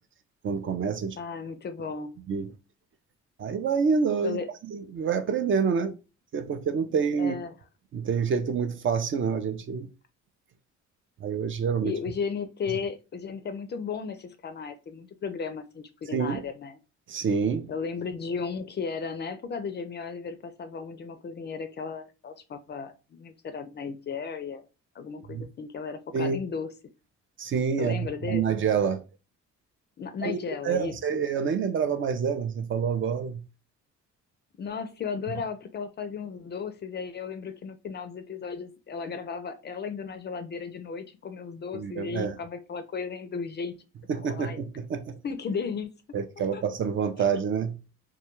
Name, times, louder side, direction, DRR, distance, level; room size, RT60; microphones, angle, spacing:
voice 1, 0.4-1.2 2.3-2.5 3.4-4.4 4.7-6.0 6.3-7.3 7.9-9.9 11.2-11.9 12.7-12.8 16.1-16.4 17.1-17.7 25.3-25.5 26.1-26.4 27.4-29.0 30.2-30.4 30.6-33.4 41.7-42.4 44.1-45.2 46.1-47.8, right 6 dB, 40° right, 0.4 m, -27 dB
voice 2, 1.2-2.1 4.2-4.5 7.2-7.5 11.8-16.8 17.7-24.6 24.9-26.7 27.8-28.4 30.0-31.2 34.6-43.8 44.3-44.6 45.2-46.0 46.5-46.6, left 5 dB, 35° left, 0.4 m, -35 dB
2.2 x 2.2 x 2.9 m
cardioid pair, 90°, 30 cm